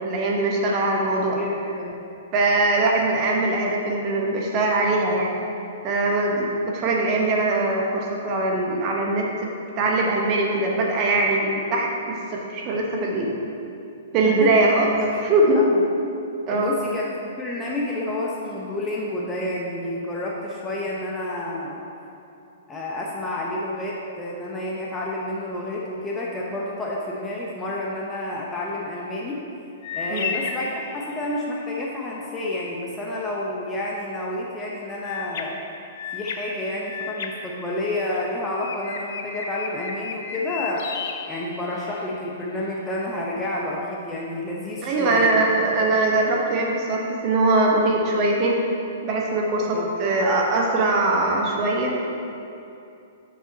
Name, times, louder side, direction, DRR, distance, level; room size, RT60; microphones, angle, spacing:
voice 1, 0.0-1.4 2.3-5.3 5.8-9.5 9.8-13.3 14.1-14.9 15.2-15.6 16.5-16.7 30.1-30.3 44.8-48.6 49.0-52.1, right 2 dB, 35° right, -1 dB, 1.0 m, -22 dB
voice 2, 1.2-1.9 14.2-14.5 15.0-15.2 15.6-15.7 16.5-21.8 22.7-29.5 29.9-35.6 36.1-40.9 41.3-45.4 49.7-49.9, left 1 dB, 15° left, -4 dB, 0.8 m, -30 dB
sound 1, 29.8-31.5 35.0-38.2 38.6-42.0, left 5 dB, 55° left, 0.7 m, -34 dB
6.3 x 6.3 x 4.0 m, 2.7 s
hypercardioid pair, 125°, 0 cm